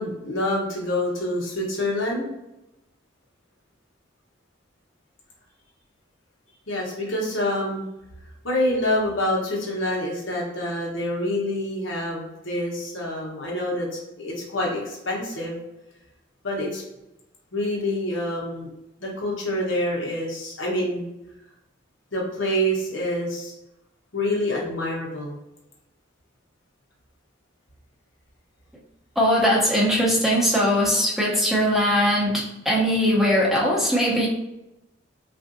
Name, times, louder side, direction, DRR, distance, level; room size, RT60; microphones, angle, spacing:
voice 1, 0.0-2.3 6.7-7.8 8.4-15.6 16.4-16.8 17.5-18.7 19.0-21.1 22.1-23.5 24.1-25.4, left 1 dB, 85° left, -3 dB, 1.0 m, -26 dB
voice 2, 29.2-34.3, equal, ahead, -5 dB, 0.6 m, -20 dB
3.6 x 2.5 x 2.5 m, 0.94 s
head